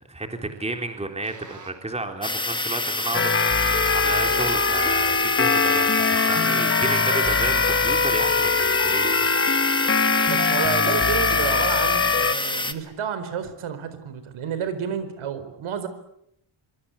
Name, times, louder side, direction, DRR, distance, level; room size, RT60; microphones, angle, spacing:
voice 1, 0.1-9.9, right 2 dB, 15° right, 5 dB, 3.6 m, -32 dB
sound 1, 1.2-1.9 4.2-5.1 7.2-8.2 10.2-11.1, right 4 dB, 35° right, 4.2 m, -45 dB
sound 2, 2.2-12.7, left 2 dB, 10° left, 1.7 m, -27 dB
sound 3, 3.1-12.3, left 5 dB, 25° left, 1.4 m, -22 dB
voice 2, 10.3-15.9, right 7 dB, 75° right, 11 dB, 4.5 m, -30 dB
26.5 x 24.0 x 8.3 m, 0.75 s
cardioid pair, 140°, 49 cm